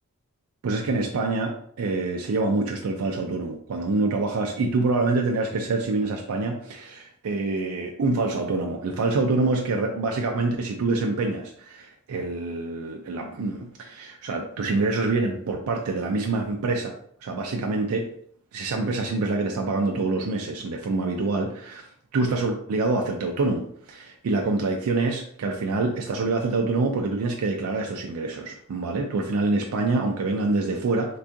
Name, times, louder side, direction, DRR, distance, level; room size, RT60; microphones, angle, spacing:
voice 1, 0.6-16.9 17.2-18.1 18.5-31.2, right 3 dB, 70° right, 2 dB, 0.4 m, -26 dB
3.6 x 2.3 x 2.5 m, 0.65 s
head